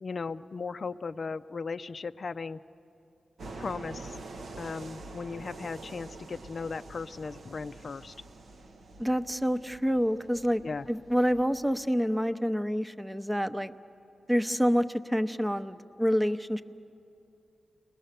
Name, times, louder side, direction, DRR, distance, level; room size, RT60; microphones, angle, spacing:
voice 1, 0.0-2.6 3.6-4.2 4.6-8.1 10.6-10.9, left 4 dB, 55° left, 10 dB, 0.5 m, -37 dB
sound 1, 3.4-11.8, right 2 dB, 70° right, 1.1 m, -46 dB
voice 2, 9.0-10.6 10.9-13.7 14.3-16.6, equal, 5° right, 11 dB, 0.8 m, -27 dB
29.5 x 20.5 x 6.8 m, 2.7 s
cardioid pair, 65°, 0 cm